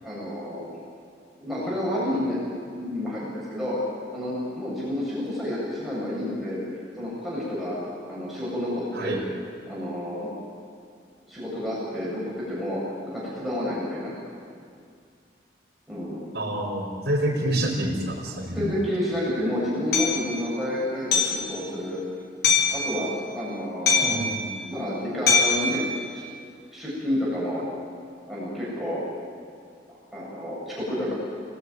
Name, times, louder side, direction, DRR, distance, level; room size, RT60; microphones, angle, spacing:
voice 1, 0.0-0.8 1.4-2.4 2.7-3.8 4.1-6.6 7.0-7.8 8.1-9.2 9.7-10.3 11.3-12.8 13.1-14.1 15.9-16.2 18.5-22.0 22.7-24.2 24.7-25.8 26.1-26.2 26.7-27.6 28.3-29.0 30.1-31.1, left 1 dB, ahead, -8 dB, 8.0 m, -29 dB
voice 2, 16.3-18.7 24.0-24.5, right 1 dB, 70° right, -3 dB, 5.1 m, -27 dB
Hammer, 19.9-20.1 21.1-21.4 22.4-22.8 23.9-24.3 25.3-25.6, left 5 dB, 70° left, 6.4 m, -20 dB
30.0 x 19.0 x 9.7 m, 2.3 s
head